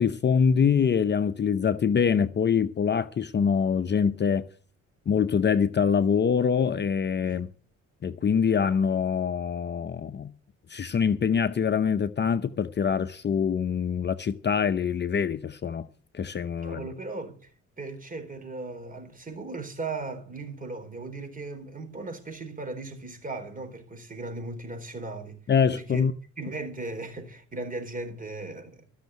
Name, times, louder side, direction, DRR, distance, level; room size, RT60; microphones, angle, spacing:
voice 1, 0.0-4.4 5.1-7.5 8.0-10.3 10.7-15.9 16.1-16.8 25.5-26.1, left 6 dB, 35° left, 0.7 m, -24 dB
voice 2, 16.6-17.4 17.8-25.4 25.7-26.0 26.4-28.8, right 3 dB, 25° right, 4.1 m, -37 dB
14.0 x 6.4 x 9.4 m
cardioid pair, 90°, 30 cm